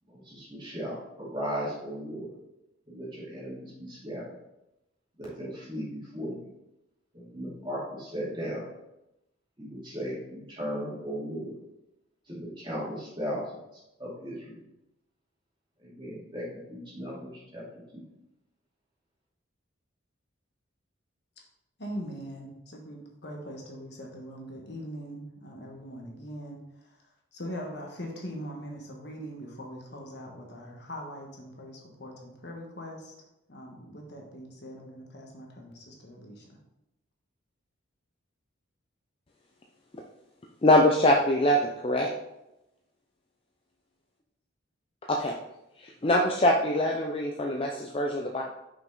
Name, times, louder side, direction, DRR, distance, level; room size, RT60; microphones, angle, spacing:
voice 1, 0.1-2.3 2.9-4.3 5.2-6.5 7.1-8.7 9.6-11.6 12.3-13.4 13.7-14.6 15.8-17.6 17.9-18.0, equal, 25° right, -6 dB, 2.4 m, -36 dB
voice 2, 21.8-26.6 26.9-27.0 27.3-33.1 33.5-36.5, equal, 55° left, 0 dB, 1.4 m, -41 dB
voice 3, 40.6-42.1 45.1-45.3 45.8-48.4, left 1 dB, 25° left, 1 dB, 0.5 m, -23 dB
6.0 x 5.4 x 3.9 m, 0.89 s
head